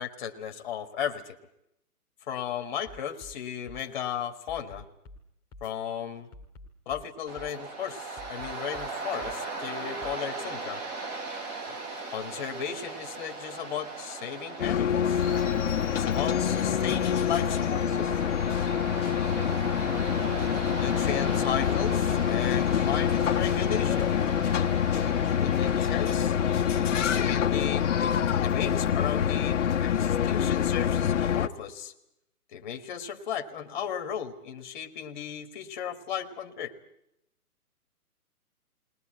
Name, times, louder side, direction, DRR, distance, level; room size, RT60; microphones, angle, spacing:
voice 1, 0.0-1.4 2.3-4.8 5.6-6.3 6.8-10.8 12.1-15.2 15.9-18.4 20.7-24.2 24.9-26.4 27.1-31.9 32.5-36.7, left 8 dB, 30° left, 7 dB, 1.6 m, -35 dB
sound 1, 2.9-3.4 3.7-3.9 4.5-5.2 5.5-5.7 6.3-7.1 7.4-7.6 8.2-8.9 9.2-9.4 10.0-10.2, left 2 dB, 5° left, 1.9 m, -48 dB
Waves surf, 7.3-27.1, right 3 dB, 25° right, 3.3 m, -39 dB
sound 2, 14.6-31.5, left 9 dB, 50° left, 1.1 m, -26 dB
21.0 x 19.0 x 8.9 m, 0.81 s
hypercardioid pair, 160°, 46 cm